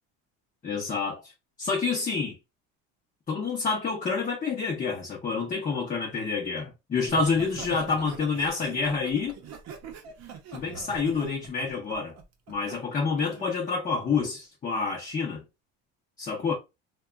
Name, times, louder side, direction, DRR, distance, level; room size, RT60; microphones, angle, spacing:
voice 1, 0.6-1.3 1.6-2.4 3.3-9.4 10.5-12.1 12.5-15.4 16.2-16.5, left 4 dB, 25° left, 0.6 m, -28 dB
Laughter, 7.1-12.8 13.2-13.5, right 6 dB, 50° right, 0.7 m, -43 dB
2.8 x 2.2 x 2.3 m
cardioid pair, 120°, 35 cm